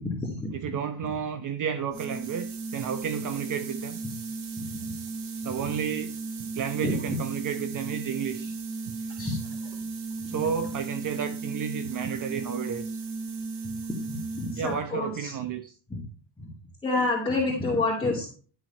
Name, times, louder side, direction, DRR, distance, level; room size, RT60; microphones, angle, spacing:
voice 1, 0.0-0.5 4.7-4.8 6.8-6.9 9.2-9.4 10.2-10.4 14.1-15.3 15.9-16.0 16.4-16.5 16.8-18.3, left 2 dB, 10° left, -4 dB, 2.6 m, -28 dB
voice 2, 0.5-4.0 5.4-6.1 6.4-8.5 8.9-9.0 10.3-13.0 14.6-15.7, right 7 dB, 40° right, 9 dB, 0.9 m, -32 dB
sound 1, 1.9-14.8, right 4 dB, 65° right, 2.7 m, -35 dB
12.5 x 6.3 x 4.4 m, 0.39 s
cardioid pair, 130°, 46 cm